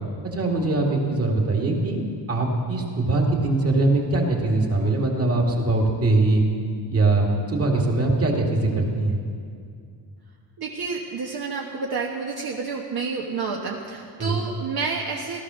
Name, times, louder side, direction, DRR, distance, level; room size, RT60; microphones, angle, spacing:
voice 1, 0.3-2.0 2.3-6.4 6.9-9.2 14.2-14.4, right 2 dB, 35° right, 0 dB, 2.3 m, -22 dB
voice 2, 10.6-15.4, right 4 dB, 60° right, -1 dB, 1.3 m, -29 dB
17.0 x 13.5 x 6.3 m, 2.3 s
wide cardioid pair, 155°, 43 cm